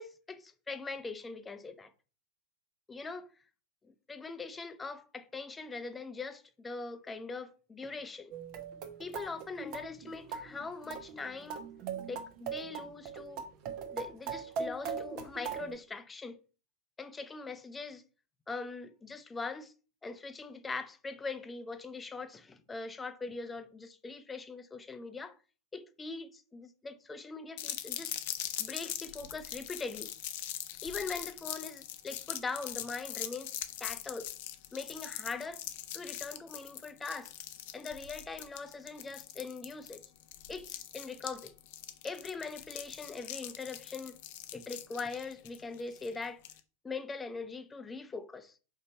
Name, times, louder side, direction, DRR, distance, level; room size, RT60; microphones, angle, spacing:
voice 1, 0.0-1.9 2.9-3.3 3.8-8.3 9.0-11.6 12.1-13.4 13.8-16.4 17.0-18.0 18.5-19.7 20.0-25.4 25.7-28.1 28.6-30.1 30.8-33.5 33.8-34.3 34.7-35.6 35.9-37.3 37.7-40.0 40.5-41.5 42.0-44.2 44.5-46.4 46.8-48.6, left 4 dB, 15° left, 0.7 m, -41 dB
sound 1, 8.3-15.8, right 6 dB, 40° right, 1.0 m, -40 dB
sound 2, 27.6-46.6, left 13 dB, 50° left, 0.7 m, -42 dB
5.1 x 4.1 x 5.4 m
figure-of-eight pair, 90°, 0 cm